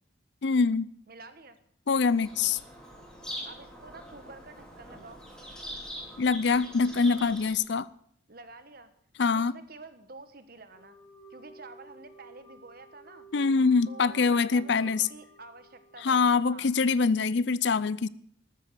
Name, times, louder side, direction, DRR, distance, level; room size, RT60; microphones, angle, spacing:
voice 1, 0.4-0.9 1.9-2.6 6.2-7.9 9.2-9.5 13.3-15.1 16.0-18.1, left 4 dB, 60° left, 0.5 m, -24 dB
voice 2, 1.1-1.6 3.4-5.2 8.3-8.9 9.2-11.0 11.3-13.3 13.9-16.7, right 3 dB, 45° right, 1.4 m, -49 dB
Bird vocalization bird call bird song, 2.1-7.5, equal, 5° left, 3.4 m, -43 dB
Wind instrument woodwind instrument, 10.7-16.4, right 1 dB, 20° left, 3.3 m, -54 dB
13.5 x 13.0 x 6.3 m
head